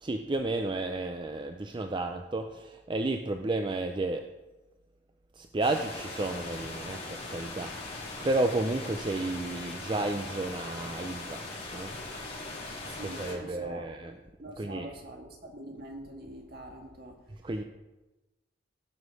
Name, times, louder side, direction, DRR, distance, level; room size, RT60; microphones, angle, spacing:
voice 1, 0.0-4.3 5.4-11.5 11.7-11.9 13.0-14.1 14.6-14.9 17.4-17.6, right 2 dB, 25° right, 0.5 m, -32 dB
sound 1, 5.6-13.3, left 2 dB, 35° left, 4.0 m, -40 dB
voice 2, 12.8-14.1 14.4-17.5, right 1 dB, 55° right, 1.9 m, -45 dB
16.5 x 6.3 x 4.8 m
head